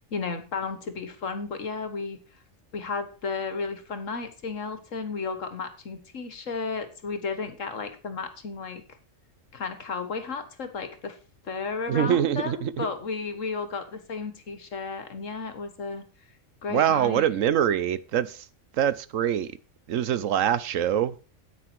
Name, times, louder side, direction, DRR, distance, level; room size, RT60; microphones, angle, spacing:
voice 1, 0.1-2.2 2.7-8.8 9.5-11.2 11.4-16.1 16.6-17.3, left 4 dB, 75° left, 1.9 m, -33 dB
voice 2, 11.9-12.9 16.7-18.5 18.8-19.5 19.9-21.2, right 10 dB, 80° right, 1.1 m, -24 dB
9.6 x 9.0 x 4.7 m
omnidirectional pair, 1.4 m